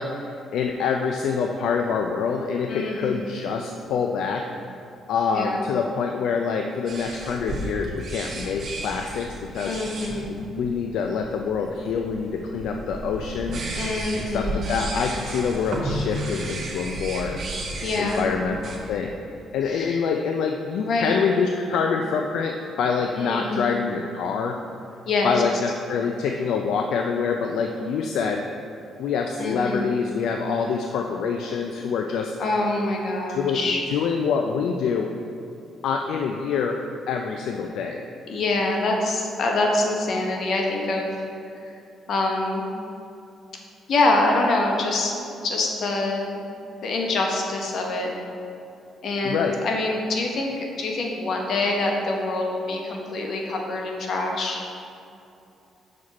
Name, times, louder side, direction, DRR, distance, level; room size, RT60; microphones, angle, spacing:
voice 1, 0.0-4.4 5.1-9.8 10.3-13.7 14.1-17.4 18.0-18.6 18.9-19.1 19.5-24.6 25.2-28.4 29.0-32.3 33.3-33.6 33.9-35.1 35.8-36.8 37.1-38.0 49.2-49.6, left 5 dB, 80° left, 3 dB, 0.3 m, -26 dB
voice 2, 2.7-3.4 5.3-5.7 9.6-10.4 13.7-14.8 17.8-18.4 19.7-20.0 20.8-21.2 23.2-23.8 25.0-25.4 29.4-30.0 32.4-33.8 38.3-41.2 41.6-41.7 42.1-42.7 43.9-45.1 45.4-46.4 46.8-48.1 49.0-54.6, left 2 dB, 65° left, 0 dB, 1.0 m, -25 dB
sound 1, 6.9-18.8, right 1 dB, 50° right, 1.1 m, -33 dB
6.0 x 5.0 x 4.1 m, 2.7 s
cardioid pair, 90°, 0 cm